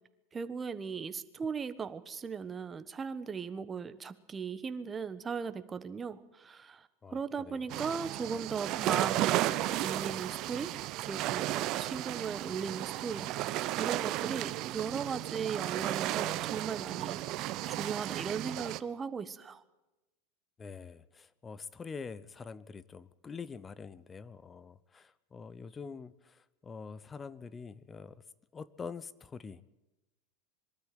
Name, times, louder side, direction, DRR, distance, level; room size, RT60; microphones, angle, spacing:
voice 1, 0.3-10.7 11.1-13.3 13.8-17.2 17.7-19.6, right 5 dB, 25° right, 12 dB, 1.2 m, -38 dB
voice 2, 7.0-7.7 20.6-28.2 28.5-29.6, left 5 dB, 20° left, 18 dB, 0.9 m, -45 dB
sound 1, 7.7-18.8, right 15 dB, 50° right, 0.8 m, -34 dB
22.5 x 13.0 x 9.3 m, 1.0 s
hypercardioid pair, 95°, 0 cm